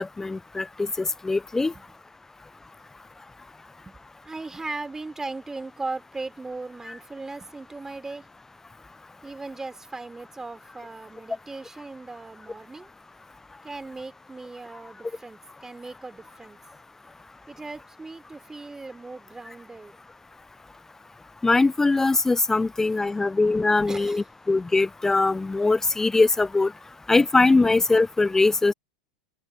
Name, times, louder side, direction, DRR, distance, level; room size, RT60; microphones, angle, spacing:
voice 1, 0.0-1.7 21.4-26.7 27.1-28.7, left 3 dB, 10° left, 0.5 m, -22 dB
voice 2, 4.2-8.3 9.2-12.9 13.6-16.6 17.5-20.0 23.9-24.3, right 3 dB, 10° right, 3.9 m, -38 dB
open air
figure-of-eight pair, 90°, 4 cm